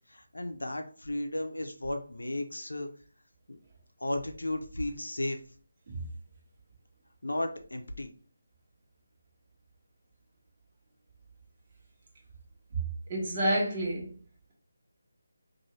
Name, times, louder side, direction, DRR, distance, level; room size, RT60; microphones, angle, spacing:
voice 1, 0.1-2.9 3.5-3.6 4.0-5.4 7.2-8.1, left 1 dB, 90° left, 0.6 m, -34 dB
voice 2, 13.1-14.1, right 1 dB, 30° right, 1.1 m, -29 dB
2.6 x 2.6 x 3.1 m
figure-of-eight pair, 160°, 0 cm